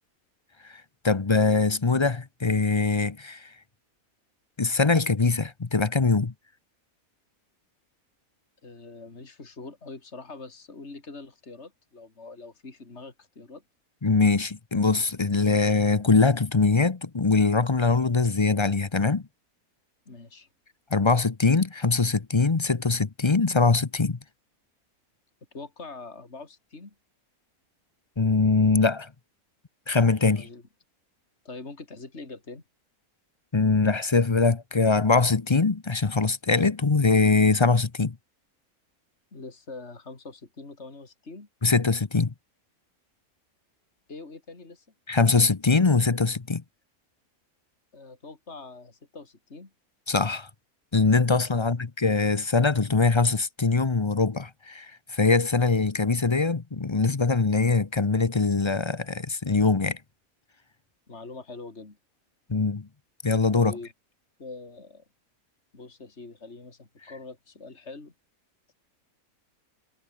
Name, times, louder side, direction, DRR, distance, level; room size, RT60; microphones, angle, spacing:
voice 1, 1.0-3.5 4.6-6.3 14.0-19.2 20.9-24.2 28.2-29.1 29.9-30.5 33.5-38.1 41.6-42.3 45.1-46.6 50.1-50.5 50.9-60.0 62.5-62.9 63.2-63.7, left 4 dB, 25° left, 0.7 m, -22 dB
voice 2, 8.6-13.6 20.1-20.5 25.5-27.0 30.3-30.6 31.5-32.6 39.3-41.5 44.1-44.9 47.9-49.7 51.5-51.8 61.1-62.0 63.5-63.9 64.4-65.1 65.7-68.1, left 3 dB, 50° left, 3.6 m, -43 dB
omnidirectional pair, 1.5 m